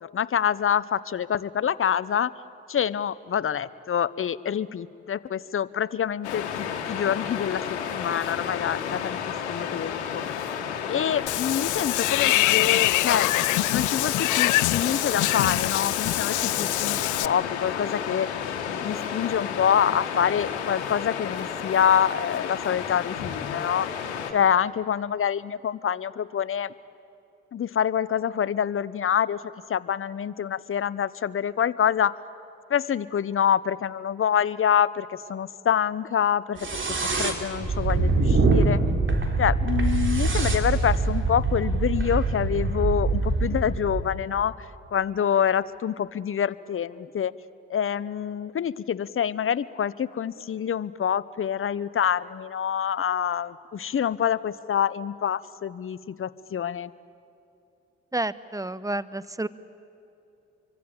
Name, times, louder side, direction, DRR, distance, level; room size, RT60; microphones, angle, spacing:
voice 1, 0.0-2.3 2.7-9.2 9.5-10.4 10.9-13.3 13.7-18.3 18.7-23.9 24.3-26.7 27.5-29.4 29.7-32.1 32.7-36.6 37.2-38.8 39.4-47.3 47.7-56.9, left 8 dB, 40° left, 18 dB, 0.9 m, -26 dB
Waves surf, 6.2-24.3, left 7 dB, 85° left, 1.6 m, -32 dB
Water / Bathtub (filling or washing), 11.3-17.3, left 18 dB, 65° left, 0.6 m, -24 dB
sound 1, 36.6-44.1, right 3 dB, 35° right, 3.5 m, -24 dB
voice 2, 58.1-59.5, right 2 dB, 10° right, 17 dB, 1.0 m, -30 dB
26.0 x 24.0 x 8.7 m, 2.8 s
hypercardioid pair, 45°, 33 cm